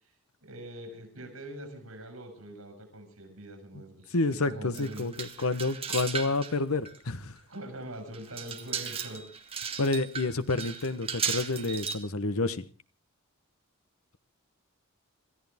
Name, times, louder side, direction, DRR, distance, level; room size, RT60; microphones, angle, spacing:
voice 1, 0.4-5.1 5.4-5.8 7.5-9.3, right 1 dB, 75° right, 7.1 m, -43 dB
voice 2, 4.1-7.4 9.8-12.6, left 3 dB, 80° left, 1.1 m, -29 dB
sound 1, 4.7-6.5 6.9-7.0 7.5-7.6 8.1-12.0, right 7 dB, 25° right, 1.8 m, -36 dB
28.0 x 14.0 x 3.6 m
head